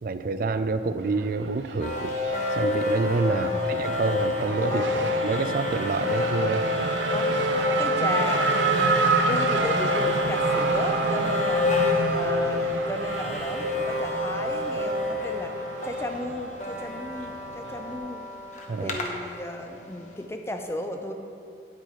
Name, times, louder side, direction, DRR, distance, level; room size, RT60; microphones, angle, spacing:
voice 1, 0.0-2.2 2.5-4.9 5.2-6.7 18.7-19.0, right 3 dB, 50° right, 11 dB, 0.3 m, -27 dB
Race car auto racing / Accelerating revving vroom, 1.0-18.0, right 4 dB, 85° right, 0.6 m, -29 dB
sound 1, 1.8-19.8, left 2 dB, 40° left, 0.9 m, -28 dB
voice 2, 3.3-3.9 4.7-5.0 7.1-7.4 7.6-9.0 9.3-11.8 12.1-18.2 18.8-21.1, left 1 dB, 15° left, 5 dB, 0.5 m, -35 dB
10.0 x 8.4 x 3.1 m, 2.5 s
head